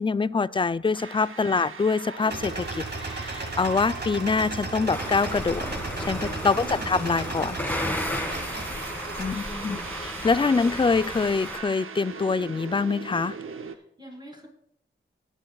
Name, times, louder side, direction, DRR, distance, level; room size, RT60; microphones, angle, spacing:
voice 1, 0.0-5.7 6.0-7.6 9.2-9.8 10.2-13.3, left 4 dB, 25° left, 16 dB, 0.4 m, -25 dB
sound 1, 0.9-13.8, right 6 dB, 80° right, 0.7 m, -40 dB
sound 2, 2.3-11.2, right 2 dB, 55° right, 2.1 m, -36 dB
sound 3, 4.9-11.6, left 1 dB, 10° left, 2.0 m, -34 dB
voice 2, 6.6-7.1 8.4-8.7 9.3-10.0 13.7-14.5, equal, 20° right, -3 dB, 5.1 m, -44 dB
18.5 x 10.0 x 2.3 m, 0.74 s
cardioid pair, 45°, 21 cm